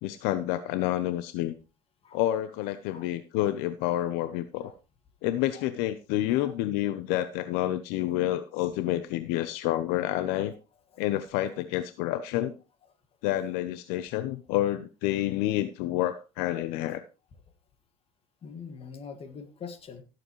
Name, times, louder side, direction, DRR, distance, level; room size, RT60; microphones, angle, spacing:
voice 1, 0.0-1.5 2.1-4.7 5.2-10.5 11.0-12.5 13.2-17.0, left 14 dB, 75° left, 12 dB, 0.8 m, -29 dB
voice 2, 18.4-20.0, left 6 dB, 35° left, 8 dB, 1.9 m, -44 dB
16.0 x 7.8 x 3.1 m, 0.31 s
supercardioid pair, 115°, 16 cm